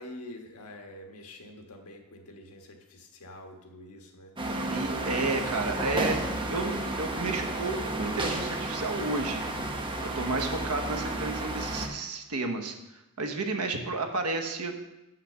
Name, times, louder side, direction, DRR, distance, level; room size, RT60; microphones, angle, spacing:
voice 1, 0.0-4.3, left 1 dB, 85° left, 3 dB, 1.3 m, -46 dB
sound 1, 4.4-11.9, right 2 dB, 20° right, 0.9 m, -32 dB
voice 2, 4.6-9.5 10.2-12.8 13.2-14.7, right 3 dB, 80° right, 5 dB, 1.1 m, -32 dB
7.5 x 5.8 x 6.8 m, 0.96 s
head